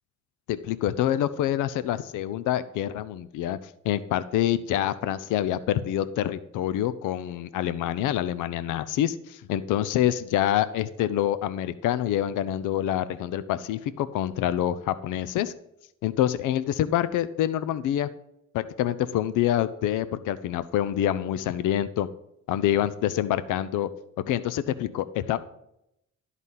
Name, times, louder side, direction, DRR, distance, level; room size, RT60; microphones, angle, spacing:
voice 1, 0.5-15.5 16.0-18.1 18.5-22.1 22.5-23.9 24.3-25.4, left 11 dB, 85° left, 14 dB, 0.5 m, -26 dB
11.0 x 4.1 x 7.3 m, 0.82 s
cardioid pair, 90°, 30 cm